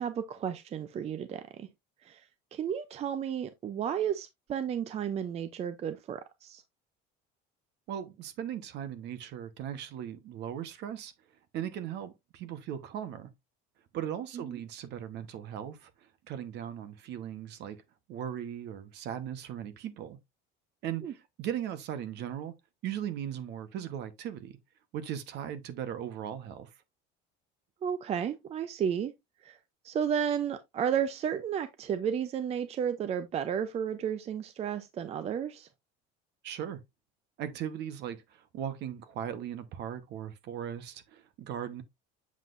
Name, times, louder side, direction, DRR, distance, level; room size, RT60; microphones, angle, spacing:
voice 1, 0.0-1.7 2.1-2.2 2.5-6.6 14.3-14.6 21.0-21.1 27.8-29.1 29.4-29.6 29.8-35.7, right 8 dB, 30° right, 0.5 m, -32 dB
voice 2, 7.9-11.1 11.5-13.3 13.9-15.9 16.3-17.8 18.1-20.2 20.8-22.5 22.8-24.5 24.9-26.7 36.4-36.8 37.4-41.8, right 10 dB, 55° right, 1.1 m, -38 dB
7.4 x 5.9 x 2.5 m
cardioid pair, 140°, 21 cm